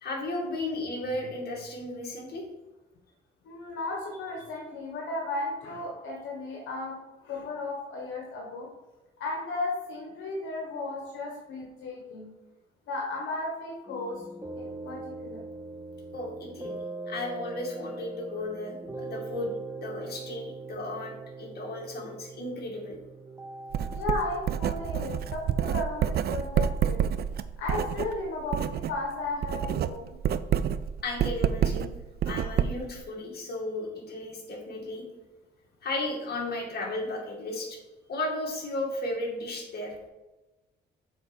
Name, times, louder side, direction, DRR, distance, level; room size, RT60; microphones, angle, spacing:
voice 1, 0.0-2.5 16.1-16.7 17.1-23.0 31.0-31.9 32.3-35.0 35.8-37.8 38.1-39.9, left 2 dB, 55° left, -1 dB, 2.2 m, -34 dB
voice 2, 3.4-8.7 9.2-12.3 12.9-14.2 14.6-15.4 19.9-20.0 23.9-27.0 27.6-30.2 32.2-32.5, left 2 dB, 80° left, -1 dB, 1.3 m, -35 dB
sound 1, 13.9-26.2, right 3 dB, 10° right, 0.8 m, -41 dB
Writing, 23.7-29.0 29.3-33.0, right 9 dB, 55° right, 0.4 m, -28 dB
7.0 x 4.1 x 5.0 m, 1.1 s
cardioid pair, 90°, 20 cm